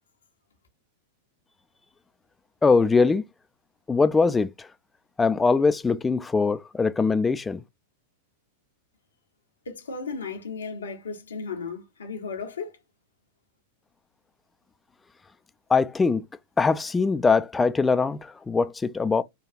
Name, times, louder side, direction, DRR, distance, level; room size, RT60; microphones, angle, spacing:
voice 1, 2.6-3.2 3.9-4.7 5.2-7.6 15.7-16.2 16.6-19.2, left 4 dB, 15° left, 0.3 m, -22 dB
voice 2, 9.7-12.8, left 4 dB, 85° left, 0.8 m, -35 dB
3.2 x 2.3 x 2.5 m
hypercardioid pair, 100°, 0 cm